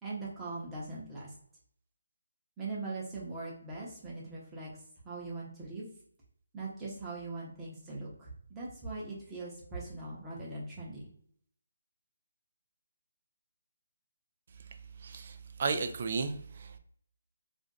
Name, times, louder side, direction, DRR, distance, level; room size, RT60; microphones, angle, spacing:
voice 1, 0.0-1.3 2.6-4.7 5.0-5.9 6.5-11.1, right 3 dB, 10° right, -6 dB, 0.8 m, -41 dB
voice 2, 15.0-16.8, right 4 dB, 40° right, 7 dB, 0.3 m, -34 dB
2.5 x 2.2 x 3.8 m, 0.63 s
hypercardioid pair, 170°, 0 cm